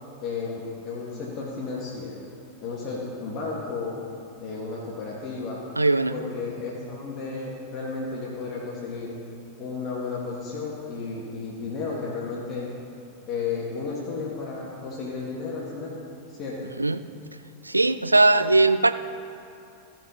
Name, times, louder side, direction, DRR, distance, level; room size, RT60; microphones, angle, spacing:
voice 1, 0.2-2.2 2.6-4.0 4.4-5.6 6.1-9.2 9.6-12.7 13.3-16.0 16.3-16.7, left 4 dB, 35° left, -5 dB, 1.9 m, -33 dB
voice 2, 5.8-6.1 16.8-17.0 17.6-18.9, right 2 dB, 85° right, 13 dB, 0.4 m, -19 dB
15.5 x 6.0 x 5.5 m, 2.5 s
figure-of-eight pair, 90°, 0 cm